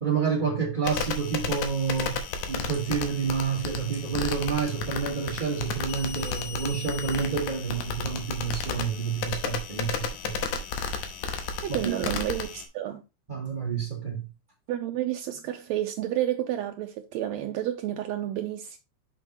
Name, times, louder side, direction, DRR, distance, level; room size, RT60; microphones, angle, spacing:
voice 1, 0.0-10.6 11.7-12.0 13.3-14.3, right 6 dB, 35° right, 0.8 m, -29 dB
sound 1, 0.9-12.7, left 5 dB, 85° left, 2.4 m, -33 dB
voice 2, 11.6-13.0 14.7-18.8, right 12 dB, 80° right, 1.8 m, -30 dB
6.7 x 6.1 x 2.9 m
omnidirectional pair, 3.4 m